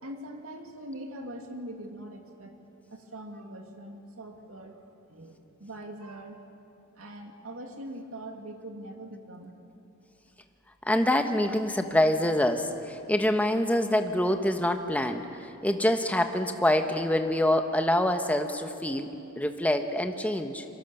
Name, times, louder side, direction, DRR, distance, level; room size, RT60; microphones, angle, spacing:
voice 1, 0.0-2.5 2.9-4.8 5.1-6.4 7.0-9.5, right 1 dB, 70° right, 3 dB, 2.6 m, -42 dB
voice 2, 10.8-20.6, left 1 dB, 5° left, 6 dB, 1.2 m, -26 dB
27.5 x 23.5 x 7.0 m, 2.8 s
head